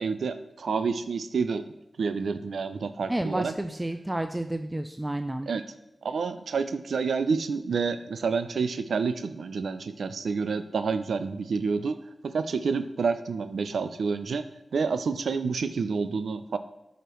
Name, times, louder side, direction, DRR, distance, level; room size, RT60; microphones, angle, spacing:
voice 1, 0.0-1.6 2.0-3.5 5.5-5.6 6.0-12.0 12.2-14.4 14.7-16.6, right 5 dB, 85° right, 10 dB, 0.4 m, -28 dB
voice 2, 3.1-5.5, right 1 dB, 15° right, 7 dB, 0.4 m, -30 dB
11.0 x 5.1 x 3.0 m, 0.89 s
cardioid pair, 65°, 0 cm